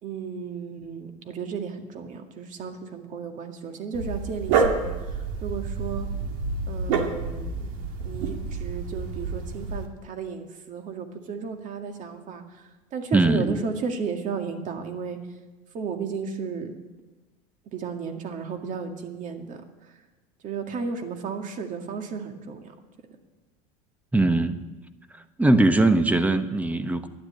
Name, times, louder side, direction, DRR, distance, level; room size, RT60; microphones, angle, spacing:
voice 1, 0.0-6.1 6.7-7.7 8.0-12.6 12.9-15.2 15.7-16.7 17.7-19.6 20.4-22.7, right 5 dB, 45° right, 5 dB, 2.1 m, -34 dB
Dog, 3.9-9.9, right 4 dB, 80° right, 2.1 m, -28 dB
voice 2, 13.1-13.6 24.1-24.6 25.4-27.1, right 2 dB, 10° right, 10 dB, 1.0 m, -20 dB
12.0 x 10.5 x 8.8 m, 1.2 s
supercardioid pair, 115°, 18 cm